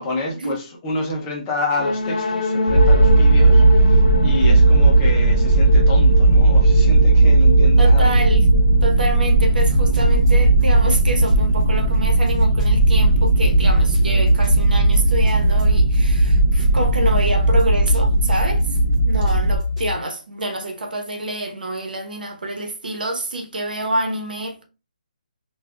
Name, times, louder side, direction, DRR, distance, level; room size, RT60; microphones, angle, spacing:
voice 1, 0.0-8.1, left 2 dB, 10° left, 0.5 m, -28 dB
sound 1, 1.8-9.5, left 4 dB, 70° left, 0.7 m, -28 dB
sound 2, 2.7-19.6, right 2 dB, 55° right, 0.7 m, -15 dB
voice 2, 7.8-8.4 8.8-18.7 19.0-24.6, right 1 dB, 85° right, 1.0 m, -27 dB
hip hop soundboy, 9.3-19.9, left 4 dB, 5° right, 1.1 m, -27 dB
4.1 x 2.3 x 2.4 m
hypercardioid pair, 175°, 5 cm